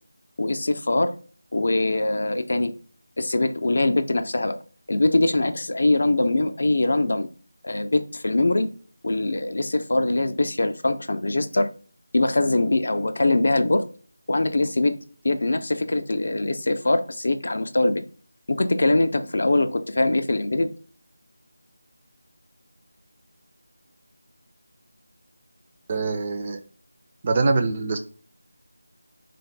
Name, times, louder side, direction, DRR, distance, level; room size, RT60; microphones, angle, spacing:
voice 1, 0.4-1.1 1.5-2.7 3.2-4.6 4.9-7.3 7.6-8.7 9.0-11.7 12.1-13.9 14.3-15.0 15.2-18.0 18.5-20.7, left 2 dB, 60° left, 10 dB, 0.4 m, -22 dB
voice 2, 25.9-26.6 27.2-28.0, right 3 dB, 25° right, 7 dB, 0.3 m, -23 dB
3.9 x 2.5 x 3.2 m, 0.40 s
figure-of-eight pair, 165°, 0 cm